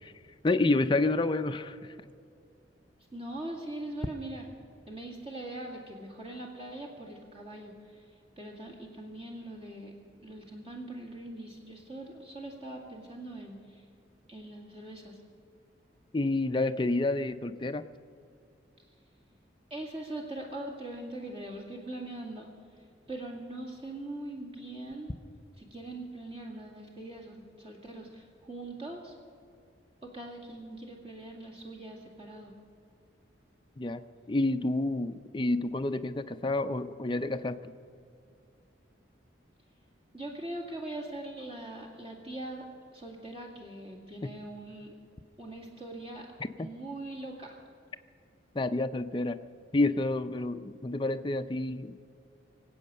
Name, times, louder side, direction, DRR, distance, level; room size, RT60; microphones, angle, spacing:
voice 1, 0.4-1.8 16.1-17.8 33.8-34.0 34.3-37.7 44.2-44.3 48.5-49.4 49.7-52.0, left 2 dB, 25° left, 9 dB, 0.5 m, -29 dB
voice 2, 3.1-4.4 4.9-10.0 10.2-13.9 14.3-15.2 19.7-25.1 25.6-29.1 30.0-32.5 40.1-42.7 42.9-45.0 45.4-46.3 46.6-47.6, right 1 dB, 30° right, -1 dB, 2.1 m, -42 dB
24.0 x 8.5 x 6.7 m, 2.4 s
head